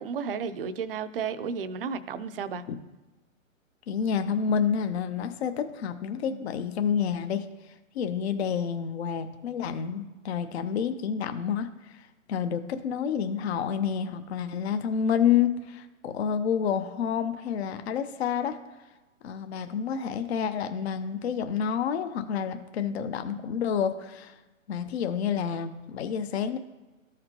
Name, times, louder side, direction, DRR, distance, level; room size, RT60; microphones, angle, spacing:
voice 1, 0.0-2.6, right 6 dB, 45° right, 0.6 m, -33 dB
voice 2, 3.9-7.4 7.9-11.7 11.9-18.6 19.2-24.3 24.7-26.6, left 7 dB, 50° left, 0.7 m, -29 dB
14.0 x 5.0 x 2.9 m
hypercardioid pair, 140°, 40 cm